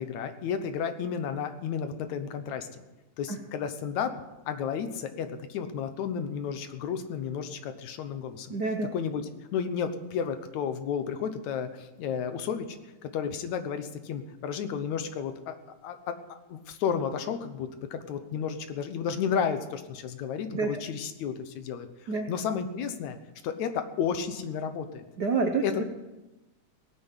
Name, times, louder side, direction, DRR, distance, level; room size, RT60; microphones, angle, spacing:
voice 1, 0.0-2.8 3.2-4.1 4.5-8.6 8.9-9.3 9.5-12.8 13.0-16.2 16.5-23.2 23.4-25.0 25.6-25.8, left 7 dB, 75° left, 9 dB, 2.3 m, -32 dB
voice 2, 8.5-8.9 20.5-20.8 22.1-22.3 25.2-25.8, right 4 dB, 70° right, 4 dB, 0.9 m, -28 dB
17.0 x 9.4 x 8.1 m, 1.0 s
omnidirectional pair, 3.5 m